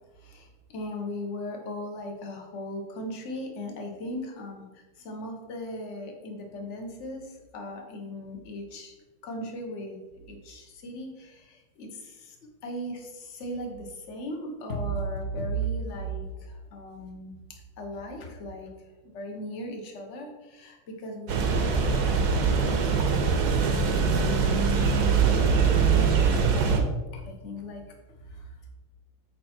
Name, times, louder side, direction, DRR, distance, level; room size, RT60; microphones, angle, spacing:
voice 1, 0.2-4.6 5.0-7.3 7.5-8.9 9.2-10.0 10.3-12.3 12.6-17.3 17.8-18.7 19.1-22.1 23.3-23.6 27.2-27.8 28.3-28.4, right 1 dB, 40° left, 2 dB, 1.3 m, -37 dB
sound 1, 21.3-26.8, right 5 dB, 60° right, 1.2 m, -23 dB
7.8 x 5.1 x 4.4 m, 1.2 s
omnidirectional pair, 2.3 m